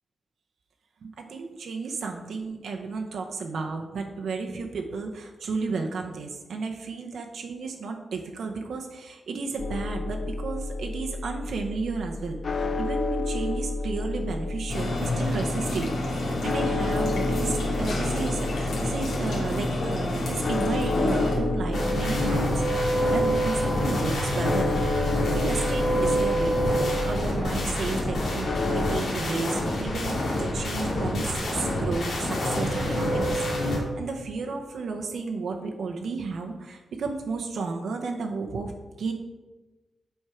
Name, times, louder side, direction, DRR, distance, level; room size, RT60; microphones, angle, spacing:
voice 1, 1.0-22.6 23.1-24.9 25.3-39.1, right 4 dB, 75° right, 2 dB, 0.7 m, -33 dB
sound 1, 9.6-29.0, left 2 dB, 35° left, 0.3 m, -31 dB
sound 2, 14.7-21.4, left 1 dB, 90° left, 2.0 m, -28 dB
sound 3, 21.7-33.8, equal, 65° left, 1.9 m, -26 dB
8.0 x 4.4 x 4.8 m, 1.2 s
wide cardioid pair, 170°, 0 cm